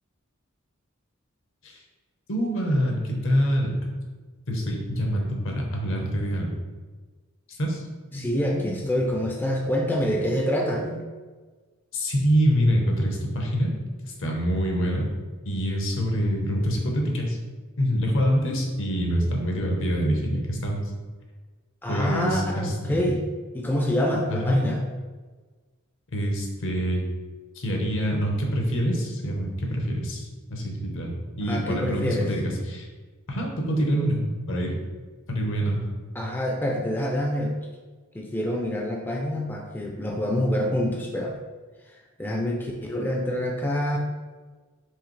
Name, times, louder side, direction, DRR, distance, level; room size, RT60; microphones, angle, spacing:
voice 1, 2.3-4.1 4.5-6.5 7.6-7.8 11.9-13.7 14.0-15.1 15.4-17.4 17.8-20.8 21.9-23.1 24.3-24.7 26.1-27.0 27.5-32.9 33.3-34.2 34.5-34.7 35.3-35.9, equal, 65° left, 1 dB, 0.9 m, -25 dB
voice 2, 8.1-11.0 21.8-23.2 23.5-24.8 31.5-32.3 36.2-37.5 38.1-41.4 42.2-44.0, equal, 10° left, 0 dB, 0.4 m, -26 dB
4.7 x 3.2 x 3.2 m, 1.4 s
head